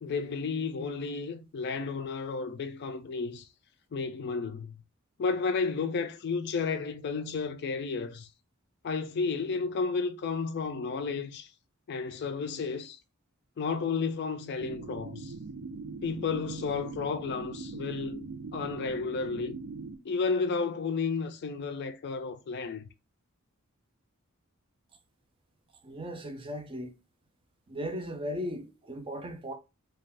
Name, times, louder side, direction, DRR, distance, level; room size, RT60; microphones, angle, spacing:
voice 1, 0.0-3.5 3.9-4.8 5.2-8.3 8.8-11.5 11.9-13.0 13.6-15.3 16.0-18.3 18.5-19.6 20.0-22.8, left 4 dB, 50° left, 0.4 m, -32 dB
sound 1, 14.6-20.0, right 4 dB, 85° right, 0.5 m, -41 dB
voice 2, 25.8-26.9 27.7-29.5, equal, 25° right, 0.4 m, -37 dB
2.4 x 2.3 x 3.3 m
head